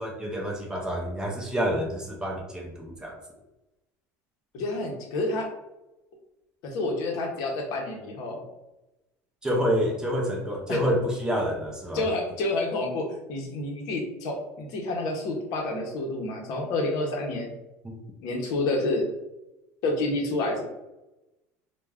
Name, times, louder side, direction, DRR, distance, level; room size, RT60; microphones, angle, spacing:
voice 1, 0.0-3.1 9.4-12.1 17.8-17.9, equal, 10° right, -1 dB, 0.4 m, -28 dB
voice 2, 4.5-5.5 6.6-8.4 10.7-10.8 11.9-17.5 18.2-19.1 19.8-20.6, left 2 dB, 60° left, 1 dB, 0.7 m, -29 dB
2.3 x 2.1 x 3.3 m, 0.98 s
cardioid pair, 155°, 7 cm